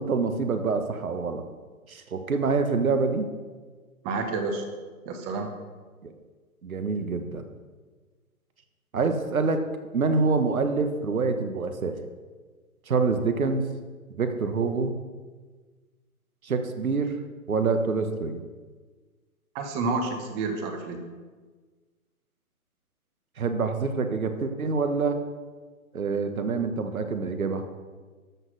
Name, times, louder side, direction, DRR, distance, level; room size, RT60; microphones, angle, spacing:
voice 1, 0.0-1.4 1.9-3.3 6.0-6.1 6.6-7.5 8.9-9.6 9.9-12.0 12.9-13.7 14.1-14.9 16.4-17.2 17.5-18.4 23.4-25.2 25.9-27.6, right 4 dB, 70° right, 7 dB, 1.4 m, -26 dB
voice 2, 4.0-4.6 5.1-5.5 19.5-21.0, right 3 dB, 15° right, 5 dB, 0.8 m, -29 dB
13.0 x 5.8 x 6.4 m, 1.4 s
figure-of-eight pair, 135°, 44 cm